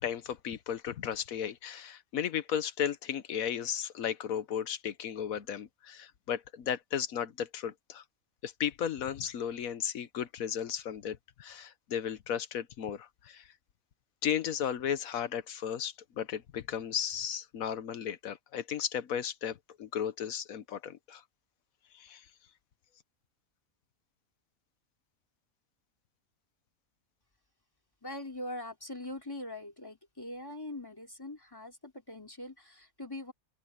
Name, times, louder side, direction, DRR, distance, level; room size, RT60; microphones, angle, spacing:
voice 1, 0.0-8.0 8.4-13.5 14.2-21.2 21.9-22.2, left 9 dB, 85° left, 1.3 m, -35 dB
voice 2, 28.0-33.3, left 1 dB, 15° left, 3.5 m, -42 dB
open air
omnidirectional pair, 1.4 m